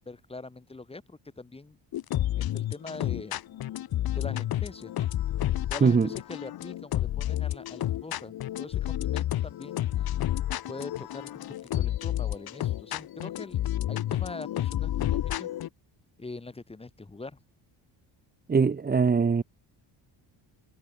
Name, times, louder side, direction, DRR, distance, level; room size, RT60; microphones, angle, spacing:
voice 1, 0.1-1.8 2.4-3.4 4.0-5.1 5.7-10.1 10.7-13.6 13.9-15.5 16.2-17.4, left 3 dB, 10° left, 7.8 m, -43 dB
sound 1, 1.9-15.7, left 13 dB, 50° left, 2.2 m, -30 dB
voice 2, 18.5-19.4, right 5 dB, 20° right, 2.3 m, -22 dB
cardioid pair, 165°, 46 cm